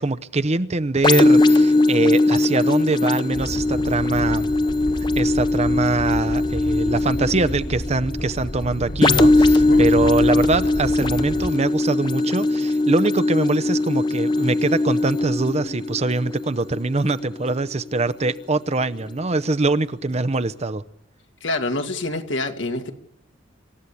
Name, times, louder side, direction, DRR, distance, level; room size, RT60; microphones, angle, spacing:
voice 1, 0.0-4.5 5.1-20.8, right 3 dB, 35° right, 0.7 m, -23 dB
sound 1, 1.0-18.6 19.1-19.2, left 2 dB, 25° left, 0.7 m, -20 dB
Animal, 3.3-11.5, equal, 45° left, 2.0 m, -31 dB
voice 2, 21.4-22.9, left 2 dB, 75° left, 2.3 m, -26 dB
26.5 x 14.5 x 8.4 m
head